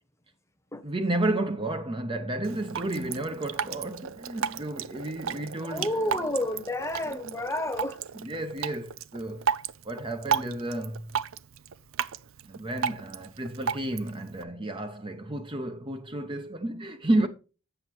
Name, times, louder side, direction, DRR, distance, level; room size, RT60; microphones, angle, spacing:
voice 1, 0.8-6.3 7.0-7.2 8.1-9.5 9.8-11.1 12.4-17.3, right 1 dB, 25° right, 0.7 m, -31 dB
Drip, 2.4-14.4, right 7 dB, 65° right, 0.5 m, -34 dB
voice 2, 5.6-8.0, left 1 dB, 15° left, 1.1 m, -30 dB
7.8 x 7.8 x 4.5 m
head